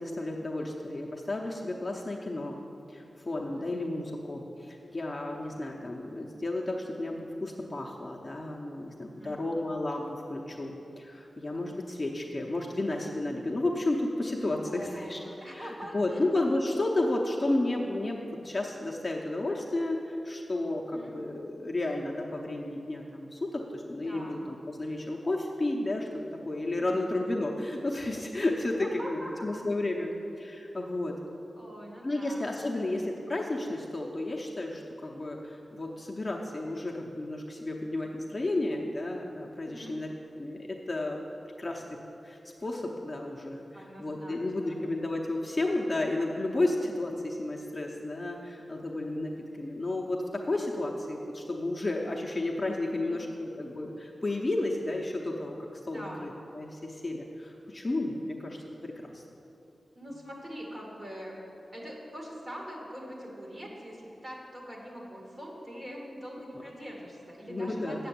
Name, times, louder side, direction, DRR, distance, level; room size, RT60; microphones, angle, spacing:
voice 1, 0.0-2.6 2.9-15.2 15.5-26.1 26.5-31.1 32.0-41.2 41.6-42.0 42.2-43.6 44.0-59.2 67.5-68.0, left 2 dB, 20° left, -1 dB, 0.8 m, -32 dB
voice 2, 9.1-9.5 14.7-16.2 20.9-21.2 24.1-24.4 26.8-27.1 28.6-29.5 31.6-32.4 32.7-32.9 39.6-40.0 43.7-44.8 52.9-53.2 55.9-56.3 60.0-61.4 61.7-68.1, equal, 35° right, -2 dB, 2.1 m, -43 dB
7.8 x 6.9 x 8.4 m, 2.8 s
wide cardioid pair, 130°, 0 cm